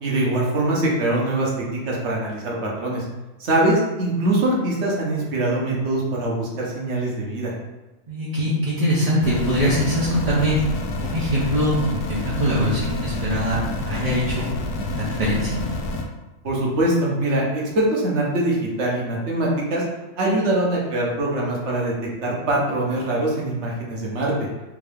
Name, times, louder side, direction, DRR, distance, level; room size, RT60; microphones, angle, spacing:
voice 1, 0.0-3.0 3.4-7.5 16.4-19.8 20.2-21.9 22.2-24.5, right 1 dB, 55° right, -3 dB, 1.1 m, -23 dB
voice 2, 8.1-10.6 11.0-14.4 14.7-15.6, equal, 35° right, -9 dB, 0.7 m, -23 dB
sound 1, 9.2-16.0, left 2 dB, 85° left, 1.1 m, -28 dB
3.6 x 2.8 x 3.4 m, 1.1 s
omnidirectional pair, 1.6 m